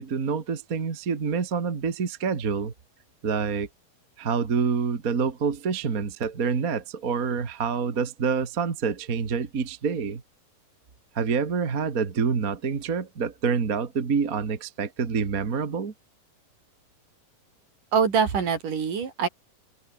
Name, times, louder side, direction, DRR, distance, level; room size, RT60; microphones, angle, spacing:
voice 1, 0.0-2.7 3.2-3.7 4.2-10.2 11.2-15.9, right 5 dB, 35° right, 1.6 m, -27 dB
voice 2, 17.9-19.3, right 6 dB, 60° right, 4.9 m, -24 dB
omnidirectional pair, 4.2 m